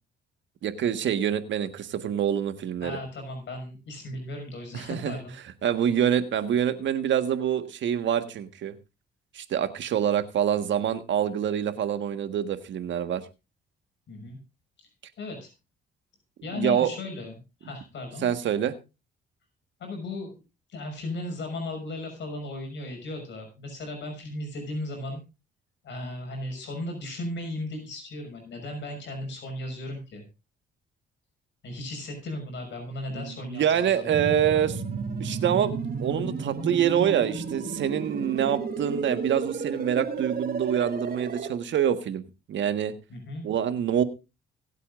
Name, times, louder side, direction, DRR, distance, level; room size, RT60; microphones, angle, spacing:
voice 1, 0.6-3.0 4.7-5.1 5.6-8.7 9.3-13.2 16.5-16.9 18.2-18.7 33.2-42.2 42.5-42.9 43.4-44.0, right 9 dB, 70° right, 10 dB, 1.5 m, -26 dB
voice 2, 2.8-5.3 14.1-14.4 14.8-14.9 15.2-15.5 16.4-17.4 17.6-18.3 19.8-20.4 20.7-25.2 25.8-30.2 31.6-34.3 43.1-43.5, left 2 dB, 65° left, 3 dB, 5.9 m, -36 dB
sound 1, 34.1-41.5, right 5 dB, 50° right, 2.8 m, -32 dB
24.5 x 8.3 x 2.5 m, 0.28 s
cardioid pair, 90°, 20 cm